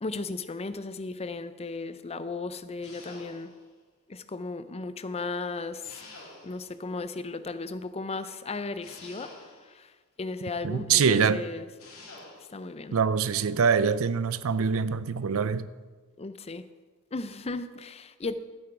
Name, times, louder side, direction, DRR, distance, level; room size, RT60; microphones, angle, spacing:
voice 1, 0.0-3.5 4.1-6.1 6.4-9.3 10.2-11.7 12.5-13.0 16.2-16.6 17.1-18.4, left 3 dB, 30° left, 0.5 m, -35 dB
sound 1, 2.8-3.7 5.8-6.8 8.8-9.8 11.8-12.6, left 2 dB, 85° left, 2.9 m, -48 dB
voice 2, 10.6-11.4 12.9-15.7, right 6 dB, 70° right, 0.5 m, -24 dB
13.0 x 7.9 x 4.7 m
head